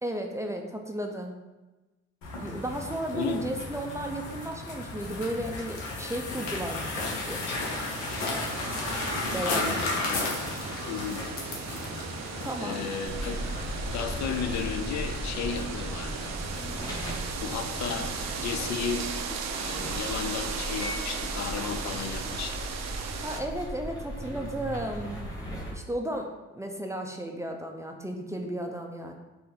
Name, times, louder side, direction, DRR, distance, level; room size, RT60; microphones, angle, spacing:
voice 1, 0.0-1.3 2.4-7.4 9.3-9.8 12.4-12.9 23.2-25.2 25.7-29.1, right 1 dB, 10° right, 2 dB, 0.4 m, -34 dB
sound 1, 2.2-18.7, left 2 dB, 90° left, 0.9 m, -35 dB
voice 2, 3.1-3.5 9.4-10.4 10.9-11.3 12.6-13.4 13.9-16.3 17.4-19.1 19.5-22.7, left 7 dB, 65° left, 7 dB, 0.5 m, -34 dB
sound 2, 7.1-23.4, right 6 dB, 60° right, 0.5 m, -37 dB
sound 3, 13.0-25.7, equal, 10° left, 1.1 m, -37 dB
4.3 x 2.5 x 3.9 m, 1.1 s
cardioid pair, 90°, 30 cm